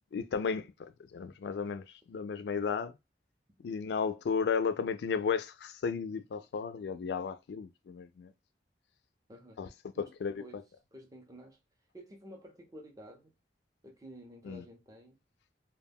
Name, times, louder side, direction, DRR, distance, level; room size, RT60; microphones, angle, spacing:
voice 1, 0.1-3.0 3.6-8.3 9.6-9.7 10.0-10.4 14.4-14.6, left 6 dB, 70° left, 0.3 m, -34 dB
voice 2, 9.3-9.6 9.9-10.1 10.4-10.6 10.9-11.6 11.9-13.3 13.8-15.2, equal, 20° right, 0.6 m, -51 dB
2.2 x 2.1 x 3.4 m
head